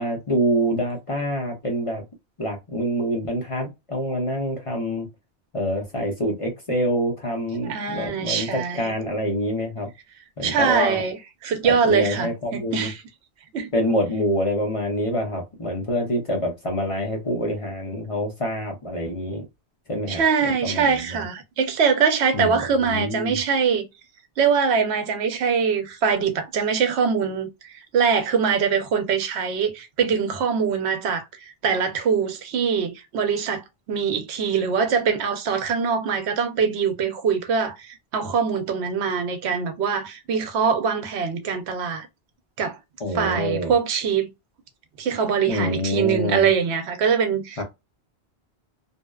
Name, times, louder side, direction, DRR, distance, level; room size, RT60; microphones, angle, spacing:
voice 1, 0.0-2.0 2.4-5.1 5.5-9.9 10.4-11.0 11.6-12.9 13.7-19.4 19.9-21.2 22.3-23.4 43.0-43.7 45.5-46.5 47.6-47.7, equal, 35° left, 0.6 m, -26 dB
voice 2, 7.6-8.9 10.4-11.2 11.4-13.0 13.5-13.7 20.1-23.9 24.4-42.1 42.6-42.8 43.1-44.3 45.0-47.6, right 6 dB, 80° right, 0.9 m, -23 dB
2.7 x 2.1 x 2.2 m
omnidirectional pair, 1.1 m